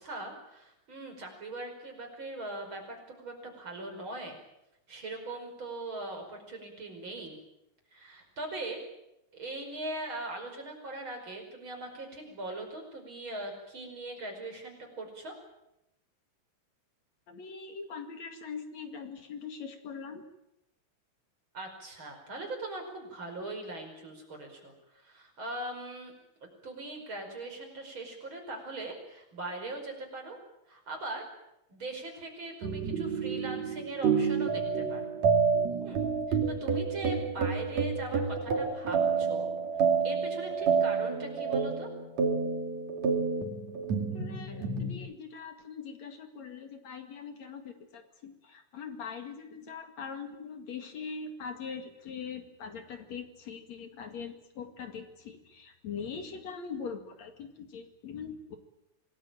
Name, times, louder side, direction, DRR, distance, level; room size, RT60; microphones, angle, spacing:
voice 1, 0.0-4.4 4.9-7.4 7.9-8.8 9.3-15.4 21.5-26.1 26.4-30.4 30.7-31.3 31.7-35.0 35.8-36.0 36.3-39.5 40.0-41.9, right 2 dB, 40° right, 3 dB, 6.0 m, -40 dB
voice 2, 17.3-20.3 44.1-58.6, left 6 dB, 65° left, 6 dB, 3.3 m, -42 dB
sound 1, 32.6-44.9, right 5 dB, 65° right, 3.8 m, -29 dB
26.5 x 19.0 x 9.1 m, 0.86 s
omnidirectional pair, 3.4 m